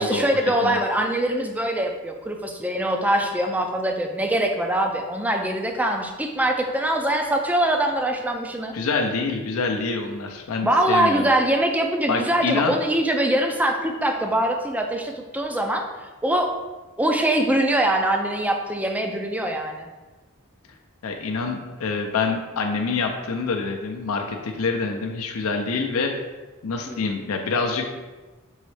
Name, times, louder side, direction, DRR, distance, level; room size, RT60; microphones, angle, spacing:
voice 1, 0.0-8.7 10.6-15.8 16.2-16.5 17.0-19.9 26.9-27.0, right 1 dB, 5° right, 3 dB, 0.4 m, -23 dB
voice 2, 8.7-11.2 12.1-12.8 21.0-26.1 26.6-28.1, left 4 dB, 70° left, 3 dB, 0.5 m, -26 dB
5.5 x 3.0 x 3.2 m, 1.2 s
head